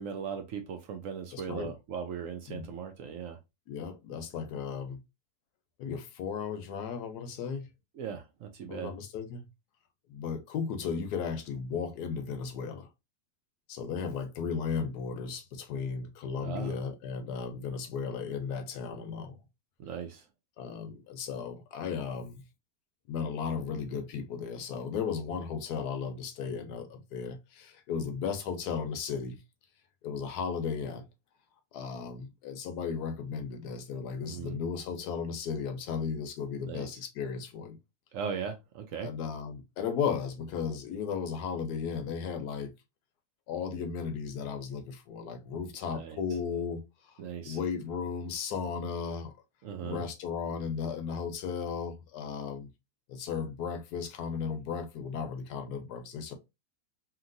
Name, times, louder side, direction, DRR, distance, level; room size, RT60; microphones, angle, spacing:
voice 1, 0.0-3.4 8.0-8.9 16.4-16.8 19.8-20.2 34.3-34.6 36.6-36.9 38.1-39.1 45.9-46.2 47.2-47.6 49.6-50.0, right 7 dB, 65° right, 0.8 m, -38 dB
voice 2, 1.3-1.7 2.5-2.7 3.7-5.0 5.8-7.7 8.7-9.4 10.1-12.9 13.7-19.3 20.6-22.4 23.1-29.4 30.0-31.0 31.7-37.8 39.0-42.7 43.5-47.1 47.4-49.3 49.8-52.7 53.1-56.3, left 6 dB, 80° left, 1.2 m, -35 dB
2.9 x 2.8 x 2.5 m
omnidirectional pair, 1.7 m